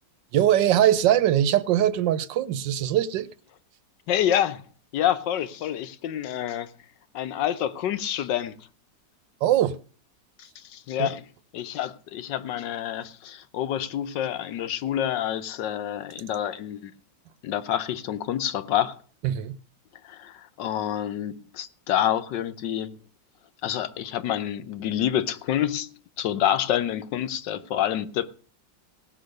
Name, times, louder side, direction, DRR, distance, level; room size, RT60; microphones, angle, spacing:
voice 1, 0.3-3.3 9.4-9.8 11.0-11.1 19.2-19.5, right 11 dB, 80° right, 1.4 m, -21 dB
voice 2, 4.1-4.6 4.9-6.7 7.1-8.6 10.4-11.2 11.5-16.9 17.4-19.0 20.0-23.0 23.6-28.3, left 11 dB, 75° left, 1.4 m, -28 dB
18.0 x 6.2 x 6.5 m
omnidirectional pair, 2.0 m